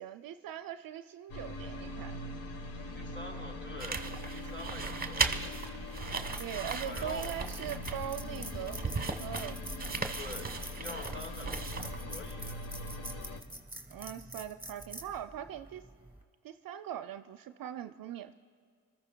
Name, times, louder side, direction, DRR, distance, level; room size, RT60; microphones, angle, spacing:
voice 1, 0.0-2.2 6.4-9.9 13.9-15.9 16.4-18.3, right 10 dB, 50° right, 9 dB, 0.5 m, -41 dB
sound 1, 1.3-13.4, left 2 dB, 50° left, 1.2 m, -42 dB
voice 2, 3.0-5.6 6.8-7.4 10.1-10.5 10.8-12.6, left 2 dB, 25° left, -1 dB, 4.4 m, -46 dB
sound 2, 3.8-12.2, right 4 dB, 20° right, 1.0 m, -37 dB
sound 3, 5.8-16.2, right 1 dB, 5° right, 2.3 m, -46 dB
28.0 x 14.0 x 2.2 m, 2.1 s
hypercardioid pair, 40°, 44 cm